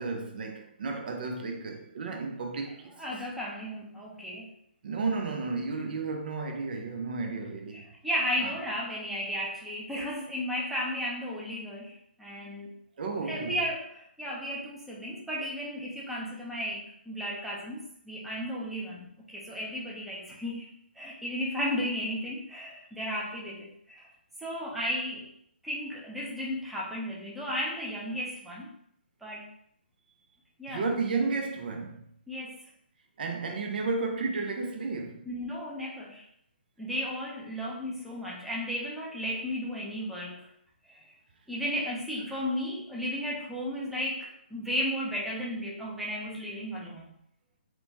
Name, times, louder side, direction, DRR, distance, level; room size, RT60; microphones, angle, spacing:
voice 1, 0.0-3.0 4.8-7.9 8.4-8.6 13.0-13.6 30.7-32.0 33.2-35.3, right 4 dB, 55° right, 0.5 m, -33 dB
voice 2, 3.0-4.5 7.7-12.7 13.2-24.1 24.4-25.3 25.6-28.7 29.2-29.5 30.6-30.9 32.3-32.6 35.3-36.2 36.8-40.5 40.9-41.0 41.5-47.0, equal, ahead, 0.5 m, -34 dB
2.9 x 2.1 x 2.7 m
figure-of-eight pair, 140°, 6 cm